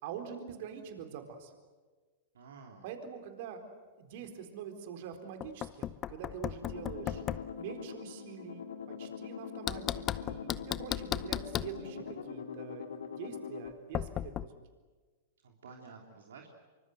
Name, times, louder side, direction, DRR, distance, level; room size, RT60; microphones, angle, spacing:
voice 1, 0.0-1.5 2.8-3.6 4.0-7.2 7.6-14.5, right 8 dB, 55° right, 6 dB, 4.0 m, -45 dB
voice 2, 2.3-2.8 15.4-16.5, right 5 dB, 75° right, 1 dB, 3.3 m, -51 dB
Knock, 5.4-7.5 9.7-11.8 13.9-14.5, left 11 dB, 30° left, 0.8 m, -36 dB
sound 1, 6.6-13.7, left 7 dB, 75° left, 2.0 m, -43 dB
26.5 x 24.5 x 8.0 m, 1.4 s
hypercardioid pair, 105°, 0 cm